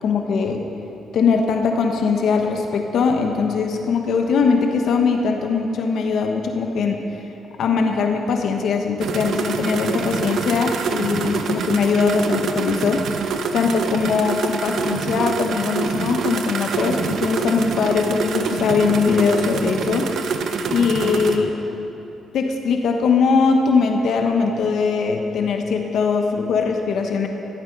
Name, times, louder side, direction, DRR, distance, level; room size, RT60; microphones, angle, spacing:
voice 1, 0.0-0.6 1.1-7.0 7.6-13.1 13.5-20.1 20.7-21.5 22.3-27.3, left 5 dB, 70° left, 3 dB, 1.2 m, -21 dB
sound 1, 9.0-21.4, right 5 dB, 70° right, 1.0 m, -26 dB
15.5 x 12.5 x 5.4 m, 2.9 s
cardioid pair, 90°, 0 cm